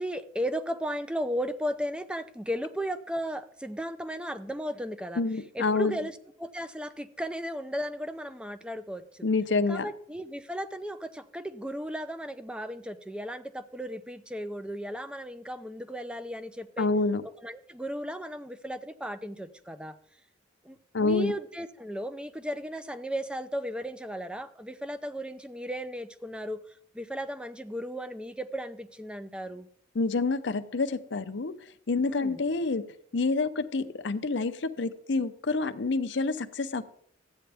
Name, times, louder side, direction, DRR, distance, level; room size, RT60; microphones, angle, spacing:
voice 1, 0.0-5.2 5.5-9.0 9.7-16.9 17.4-20.0 20.6-26.6 26.9-29.7 32.1-32.4, equal, 5° right, 10 dB, 0.5 m, -35 dB
voice 2, 5.2-6.0 9.2-9.9 16.8-17.2 20.9-21.3 29.9-31.5 31.9-32.8 33.1-36.8, left 3 dB, 65° left, 11 dB, 0.7 m, -27 dB
13.5 x 8.9 x 3.4 m, 0.64 s
head